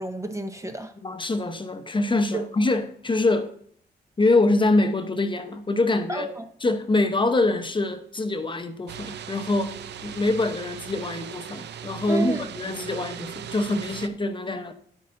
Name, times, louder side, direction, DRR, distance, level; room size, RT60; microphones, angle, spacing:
voice 1, 0.0-0.9 2.3-2.4 6.1-6.5 12.1-12.4, right 2 dB, 15° right, 0.8 m, -31 dB
voice 2, 1.0-3.5 4.2-6.3 6.6-9.8 10.0-14.7, left 2 dB, 25° left, 0.8 m, -24 dB
sound 1, 8.9-14.1, right 9 dB, 75° right, 0.5 m, -38 dB
9.8 x 8.4 x 2.6 m
cardioid pair, 70°, 18 cm